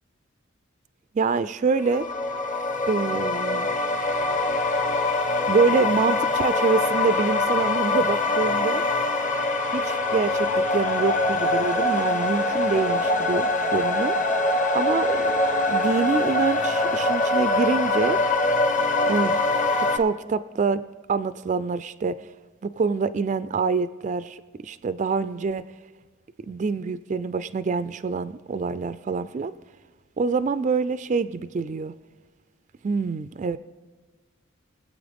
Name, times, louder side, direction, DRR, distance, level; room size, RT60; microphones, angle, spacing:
voice 1, 1.1-2.1 2.9-3.7 5.5-8.8 9.7-14.1 14.7-15.3 15.7-18.2 19.1-19.4 19.8-20.8 21.1-22.2 22.6-25.6 26.5-29.5 30.2-31.9 32.8-33.6, right 4 dB, 35° right, 13 dB, 0.3 m, -26 dB
Other Side of the Universe, 1.8-20.0, left 2 dB, 35° left, 0.9 m, -23 dB
23.5 x 8.1 x 3.5 m, 1.4 s
head